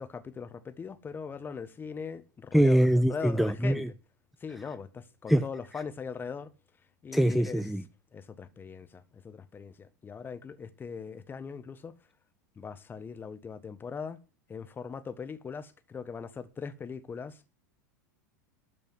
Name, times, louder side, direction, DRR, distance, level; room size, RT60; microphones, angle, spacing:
voice 1, 0.0-3.8 4.4-6.5 7.0-7.6 8.1-11.9 12.6-14.2 14.5-17.4, left 6 dB, 20° left, 1.4 m, -40 dB
voice 2, 2.5-3.9 5.3-5.4 7.1-7.8, right 1 dB, ahead, 0.5 m, -23 dB
13.0 x 5.2 x 8.1 m
figure-of-eight pair, 90°, 10 cm